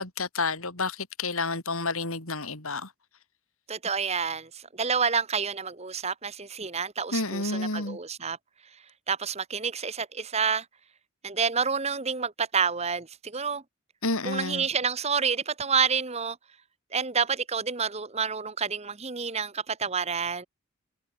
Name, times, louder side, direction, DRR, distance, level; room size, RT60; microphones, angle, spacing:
voice 1, 0.0-2.9 7.1-8.0 14.0-14.7, left 3 dB, 75° left, 4.9 m, -30 dB
voice 2, 3.7-8.4 9.1-10.6 11.2-13.6 14.2-16.4 16.9-20.5, right 6 dB, 30° right, 1.3 m, -28 dB
head